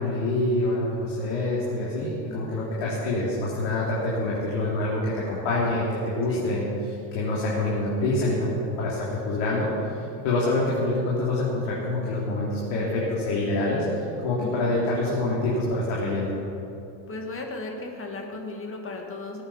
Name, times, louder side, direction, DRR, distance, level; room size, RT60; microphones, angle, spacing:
voice 1, 0.0-6.6 7.1-8.5 8.8-9.7 10.2-13.8 14.2-16.4, left 2 dB, 75° left, -6 dB, 3.4 m, -26 dB
voice 2, 2.3-2.8 6.3-6.5 14.4-14.8 17.1-19.4, left 3 dB, 25° left, 2 dB, 2.0 m, -36 dB
19.0 x 9.0 x 5.7 m, 2.7 s
cardioid pair, 150°, 48 cm